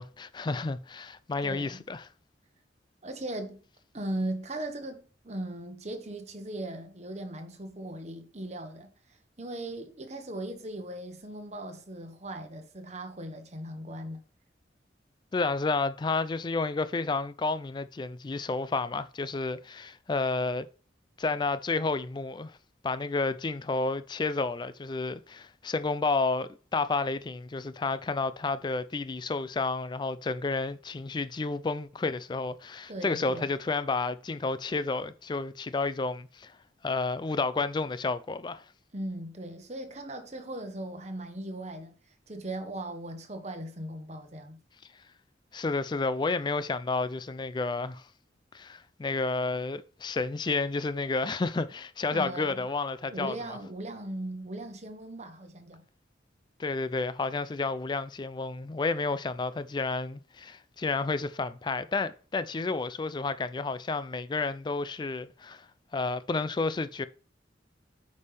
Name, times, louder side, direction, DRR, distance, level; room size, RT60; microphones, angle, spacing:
voice 1, 0.0-2.1 15.3-20.7 21.2-22.6 22.8-36.5 36.8-38.6 45.5-48.1 48.5-53.4 56.6-65.7 65.9-67.1, left 3 dB, 25° left, 0.3 m, -31 dB
voice 2, 1.4-1.8 3.0-3.6 3.9-8.9 9.4-14.2 32.9-33.4 38.9-41.9 42.3-44.6 52.1-52.7 53.1-55.8, right 1 dB, 40° right, 1.2 m, -38 dB
8.4 x 5.4 x 3.3 m
head